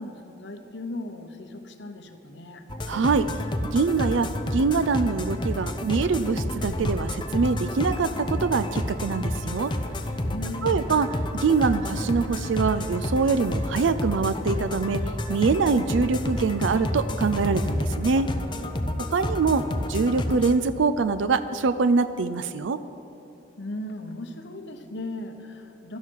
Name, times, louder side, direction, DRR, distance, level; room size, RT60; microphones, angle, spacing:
voice 1, 0.0-2.6 10.2-10.9 23.6-26.0, left 1 dB, 70° left, 6 dB, 1.0 m, -37 dB
sound 1, 2.7-20.6, left 1 dB, 25° left, 0.7 m, -30 dB
voice 2, 2.9-3.3 3.7-9.7 10.6-11.1 11.3-15.0 15.3-18.3 19.1-22.8, right 4 dB, 85° right, 11 dB, 0.4 m, -24 dB
sound 2, 6.6-8.2, equal, 30° right, 3.7 m, -38 dB
16.5 x 12.0 x 4.6 m, 2.8 s
head